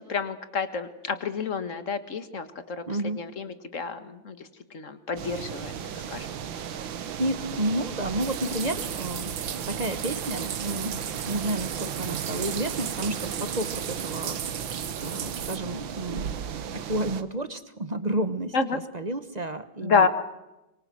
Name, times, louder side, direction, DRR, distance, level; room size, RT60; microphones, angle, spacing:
voice 1, 0.0-2.8 3.2-4.5 4.7-5.7 6.1-6.3 18.5-18.8 19.8-20.1, left 5 dB, 40° left, 11 dB, 1.9 m, -28 dB
voice 2, 2.9-3.3 7.2-9.3 9.7-11.0 11.3-16.3 16.7-20.1, right 1 dB, 25° right, 12 dB, 1.0 m, -31 dB
sound 1, 5.2-17.2, right 8 dB, 85° right, 2.0 m, -35 dB
sound 2, 8.2-15.6, right 8 dB, 70° right, 1.9 m, -36 dB
24.5 x 24.0 x 7.7 m, 0.97 s
omnidirectional pair, 2.1 m